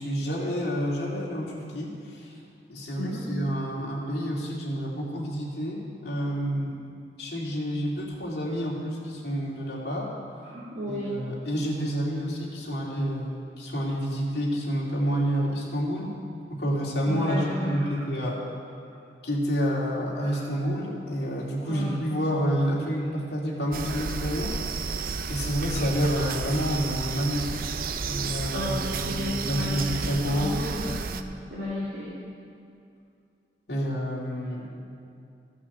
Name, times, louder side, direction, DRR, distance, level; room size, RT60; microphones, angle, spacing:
voice 1, 0.0-2.4 2.7-6.8 7.2-10.1 10.9-16.1 16.5-18.4 19.2-24.6 25.3-27.7 28.1-30.6 33.7-34.7, equal, 70° left, -4 dB, 2.5 m, -29 dB
voice 2, 2.9-3.3 10.4-11.1 17.0-18.0 18.8-19.0 20.2-20.5 21.7-22.0 28.5-31.0 31.5-32.1, left 1 dB, 70° right, -9 dB, 2.3 m, -34 dB
sound 1, 23.7-31.2, right 5 dB, 50° right, 0.5 m, -32 dB
15.0 x 6.1 x 6.8 m, 2.5 s
head